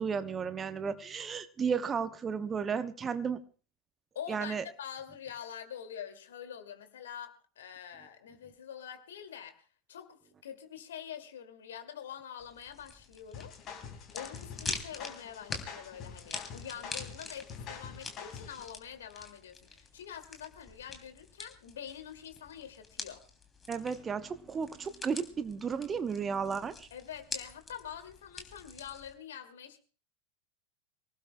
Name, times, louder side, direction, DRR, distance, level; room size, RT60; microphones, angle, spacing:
voice 1, 0.0-3.4 4.3-4.6 23.7-26.9, right 6 dB, 20° right, 11 dB, 0.9 m, -33 dB
voice 2, 4.1-13.5 14.1-23.2 26.9-29.8, left 8 dB, 60° left, 8 dB, 2.3 m, -45 dB
sound 1, 12.4-29.1, left 4 dB, 15° left, 2.9 m, -46 dB
sound 2, 13.3-18.7, left 7 dB, 35° left, 4.1 m, -45 dB
25.5 x 18.5 x 2.2 m, 0.38 s
figure-of-eight pair, 90°, 0 cm